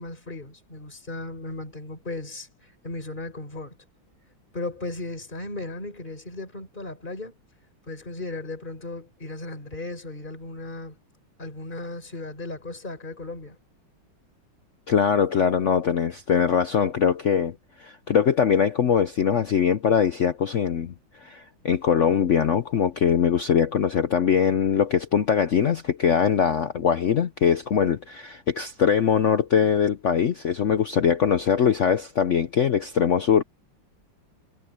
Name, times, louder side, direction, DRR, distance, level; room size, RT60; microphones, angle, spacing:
voice 1, 0.0-2.5 2.8-3.8 4.5-7.3 7.9-11.0 11.4-13.6, left 2 dB, 25° left, 4.9 m, -36 dB
voice 2, 14.9-20.9 21.2-33.4, left 7 dB, 65° left, 0.7 m, -22 dB
omnidirectional pair, 2.1 m